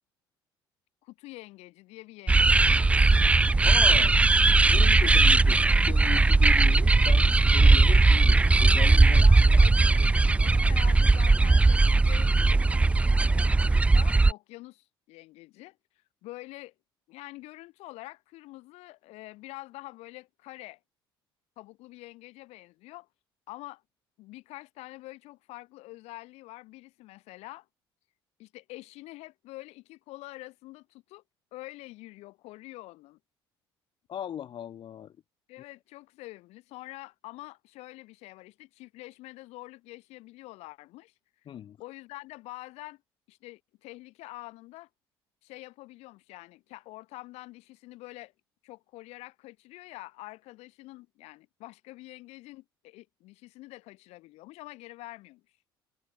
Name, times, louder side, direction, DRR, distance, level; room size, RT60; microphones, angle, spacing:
voice 1, 1.0-2.7 3.1-3.3 9.1-12.3 13.2-15.8 16.2-16.7 17.1-20.8 21.6-23.1 23.5-23.8 24.2-27.7 28.4-31.2 31.5-33.2 35.5-41.1 41.8-43.0 43.3-44.9 45.4-48.3 48.6-55.4, left 19 dB, 60° left, 2.2 m, -46 dB
sound 1, 2.3-14.3, right 3 dB, 10° right, 0.3 m, -19 dB
voice 2, 3.6-4.2 4.7-9.2 34.1-35.1 41.5-41.8, left 10 dB, 40° left, 0.7 m, -38 dB
figure-of-eight pair, 55°, 12 cm